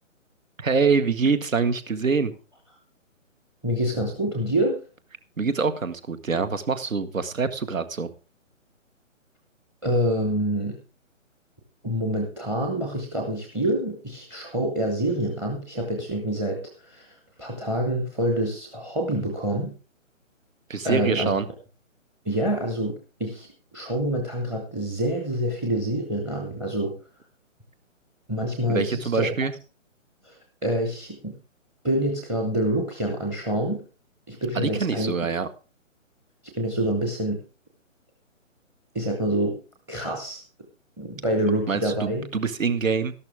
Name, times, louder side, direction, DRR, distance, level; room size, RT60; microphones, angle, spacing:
voice 1, 0.6-2.3 5.4-8.1 20.7-21.5 28.7-29.5 34.6-35.5 41.7-43.1, right 5 dB, 75° right, 12 dB, 1.8 m, -25 dB
voice 2, 3.6-4.8 9.8-10.8 11.8-19.7 20.8-21.3 22.2-27.0 28.3-29.4 30.2-31.4 31.8-33.8 34.3-35.1 36.6-37.4 38.9-39.6 39.9-40.4 41.0-42.3, right 1 dB, 5° right, 3 dB, 0.8 m, -26 dB
13.0 x 12.0 x 3.5 m, 0.35 s
hypercardioid pair, 155°, 39 cm